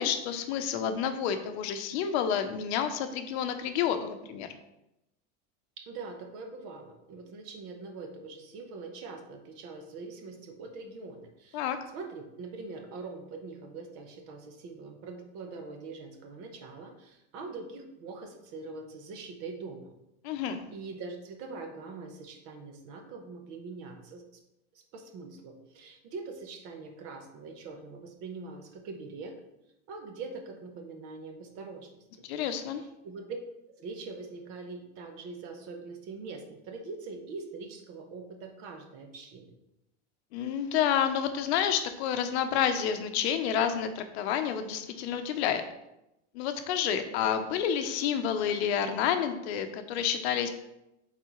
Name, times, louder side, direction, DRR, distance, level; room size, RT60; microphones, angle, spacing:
voice 1, 0.0-4.5 11.5-11.8 20.2-20.6 32.3-32.8 40.3-45.6 46.3-50.5, left 8 dB, 65° left, 8 dB, 0.7 m, -29 dB
voice 2, 5.8-19.9 20.7-24.2 24.7-29.3 29.9-32.3 32.8-33.4 33.8-39.5, right 4 dB, 45° right, 5 dB, 0.9 m, -43 dB
8.1 x 4.1 x 3.1 m, 0.88 s
supercardioid pair, 170°, 35 cm